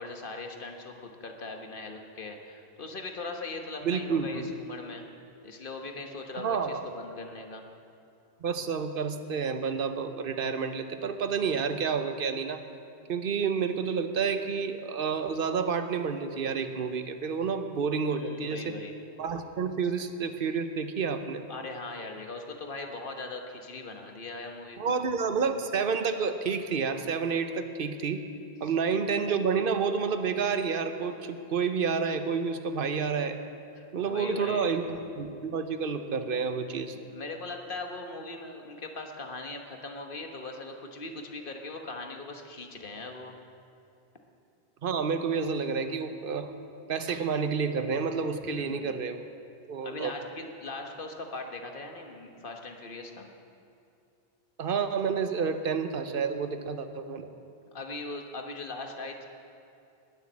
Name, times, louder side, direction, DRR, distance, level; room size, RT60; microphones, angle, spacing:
voice 1, 0.0-5.0 5.4-7.7 18.1-19.0 19.8-19.9 21.5-24.9 28.6-28.7 33.7-34.8 37.1-43.4 48.4-49.0 49.8-53.3 57.7-59.3, left 3 dB, 55° left, 4 dB, 1.5 m, -40 dB
voice 2, 3.8-4.5 6.3-6.9 8.4-12.6 13.1-18.7 19.2-21.5 24.8-28.2 28.6-33.4 33.9-37.0 44.8-46.5 46.9-49.2 49.7-50.1 54.6-57.3, right 5 dB, 55° right, 9 dB, 1.0 m, -29 dB
20.0 x 7.4 x 7.4 m, 2.6 s
omnidirectional pair, 1.1 m